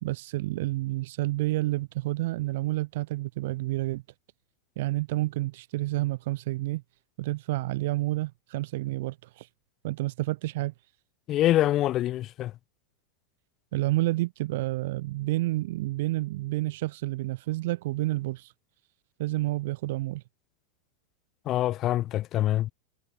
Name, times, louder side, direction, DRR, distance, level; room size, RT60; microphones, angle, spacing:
voice 1, 0.0-4.0 4.8-6.8 7.2-9.5 9.8-10.7 13.7-18.5 19.2-20.2, right 18 dB, 50° right, 1.0 m, -29 dB
voice 2, 11.3-12.5 21.5-22.7, left 14 dB, 35° left, 2.7 m, -25 dB
figure-of-eight pair, 90°, 0 cm